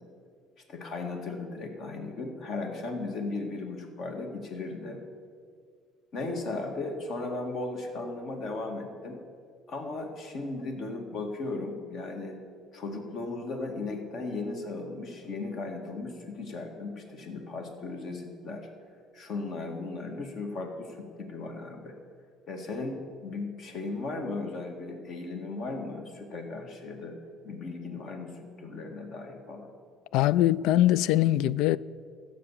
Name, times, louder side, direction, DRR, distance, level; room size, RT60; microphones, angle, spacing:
voice 1, 0.7-5.0 6.1-9.2 9.7-12.4 12.7-18.7 19.1-22.0 22.5-27.2 27.4-29.7, left 3 dB, 45° left, 1.9 m, -36 dB
voice 2, 30.1-31.8, left 14 dB, 80° left, 0.3 m, -22 dB
15.0 x 7.0 x 7.3 m
cardioid pair, 150°, 0 cm